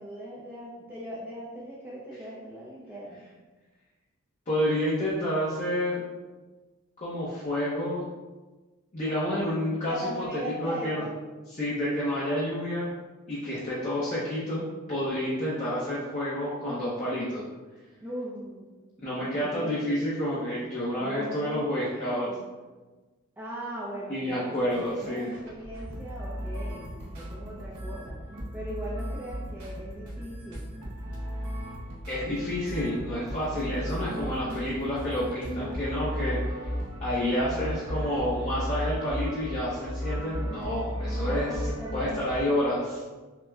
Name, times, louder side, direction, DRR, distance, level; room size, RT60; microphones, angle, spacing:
voice 1, 0.0-3.3 9.9-11.2 18.0-18.7 19.2-19.8 21.0-22.5 23.4-28.2 28.5-30.7 34.0-34.7 37.4-38.0 41.1-42.8, right 1 dB, 10° right, -7 dB, 0.5 m, -39 dB
voice 2, 4.5-6.0 7.0-8.1 8.9-11.0 11.6-13.0 13.3-17.4 19.0-22.3 24.1-25.3 32.1-36.5 37.0-41.6 41.9-42.9, equal, 35° left, -9 dB, 0.7 m, -29 dB
sound 1, 24.2-42.4, equal, 75° right, 0.8 m, -35 dB
6.0 x 2.1 x 2.4 m, 1.2 s
head